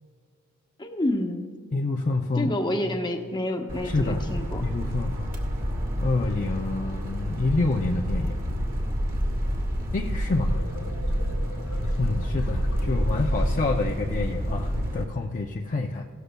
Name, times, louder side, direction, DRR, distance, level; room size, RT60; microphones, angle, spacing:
voice 1, 0.8-1.5 2.4-4.6, left 1 dB, 20° left, 4 dB, 0.9 m, -28 dB
voice 2, 1.7-2.5 3.8-5.3 6.0-8.4 9.9-10.6 12.0-16.1, left 3 dB, 35° left, 1 dB, 0.5 m, -27 dB
sound 1, 3.7-15.0, equal, 40° right, 1.6 m, -28 dB
sound 2, 10.2-13.9, left 1 dB, 85° left, 2.0 m, -44 dB
16.5 x 13.0 x 2.2 m, 2.3 s
head